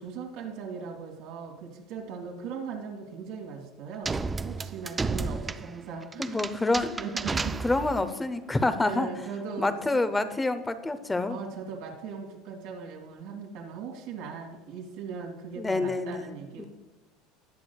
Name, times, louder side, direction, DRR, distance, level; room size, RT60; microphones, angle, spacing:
voice 1, 0.0-4.2 4.4-6.6 7.0-7.6 8.8-10.0 11.3-16.7, right 6 dB, 70° right, 0 dB, 2.3 m, -39 dB
sound 1, 4.0-8.1, right 4 dB, 15° right, 0.4 m, -32 dB
voice 2, 6.2-7.0 7.6-9.1 9.6-11.4 15.6-16.3 16.6-16.7, left 2 dB, 10° left, 11 dB, 0.7 m, -27 dB
18.5 x 6.4 x 2.3 m, 1.2 s
supercardioid pair, 120°, 0 cm